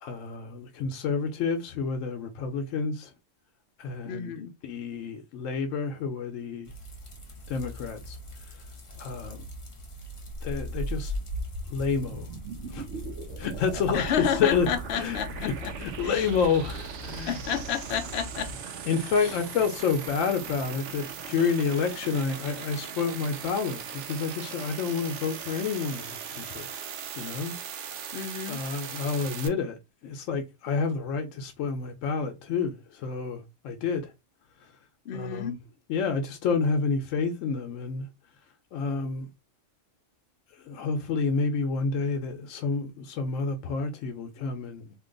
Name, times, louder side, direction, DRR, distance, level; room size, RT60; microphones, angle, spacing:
voice 1, 0.0-3.1 3.8-4.3 4.6-6.7 7.5-8.6 9.0-9.5 10.4-11.1 11.7-12.3 12.7-12.9 13.4-14.7 15.0-17.4 18.8-26.8 27.2-27.5 28.5-29.8 30.0-34.1 34.6-34.8 35.1-35.6 35.9-38.1 38.7-39.3 40.5-44.9, left 5 dB, 85° left, 1.0 m, -29 dB
voice 2, 4.0-4.5 13.9-15.3 15.6-15.7 16.0-16.3 17.3-18.5 28.1-28.6 35.1-35.6, left 8 dB, 65° left, 0.8 m, -30 dB
sound 1, 6.6-18.5, equal, 30° left, 0.6 m, -43 dB
sound 2, 10.3-29.5, right 4 dB, 70° right, 0.9 m, -38 dB
2.8 x 2.2 x 3.7 m
omnidirectional pair, 1.3 m